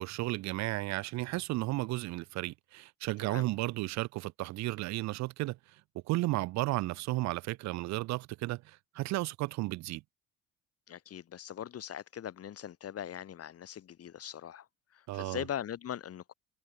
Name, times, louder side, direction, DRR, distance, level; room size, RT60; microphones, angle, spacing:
voice 1, 0.0-5.6 6.1-10.0 15.1-15.4, right 19 dB, 65° right, 0.6 m, -33 dB
voice 2, 10.9-14.7 14.9-16.3, left 10 dB, 50° left, 1.6 m, -41 dB
hypercardioid pair, 55°, 30 cm